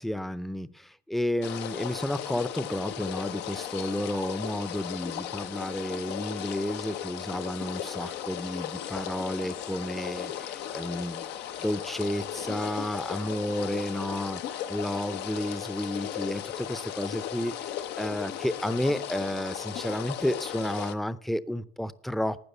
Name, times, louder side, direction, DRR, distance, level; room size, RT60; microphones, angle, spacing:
voice 1, 0.0-11.3 11.6-22.5, left 1 dB, ahead, 16 dB, 0.5 m, -32 dB
sound 1, 1.4-20.9, left 10 dB, 80° left, 0.9 m, -36 dB
12.0 x 9.3 x 7.0 m, 0.64 s
cardioid pair, 110°, 17 cm